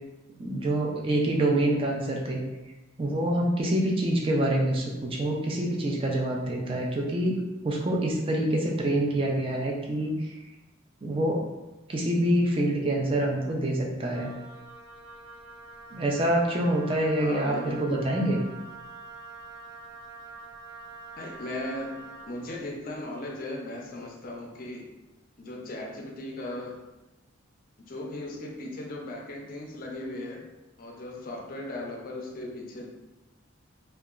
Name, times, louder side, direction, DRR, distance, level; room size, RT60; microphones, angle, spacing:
voice 1, 0.4-2.4 3.0-7.4 7.6-10.4 11.0-11.4 11.9-14.3 15.9-18.4, right 1 dB, 25° right, -1 dB, 0.3 m, -26 dB
Wind instrument woodwind instrument, 14.1-22.4, right 3 dB, 85° right, 0.6 m, -45 dB
voice 2, 17.2-18.1 21.2-24.8 25.4-26.8 27.8-30.4 30.8-32.9, left 1 dB, 45° left, 0 dB, 0.4 m, -37 dB
2.8 x 2.2 x 2.3 m, 1.0 s
head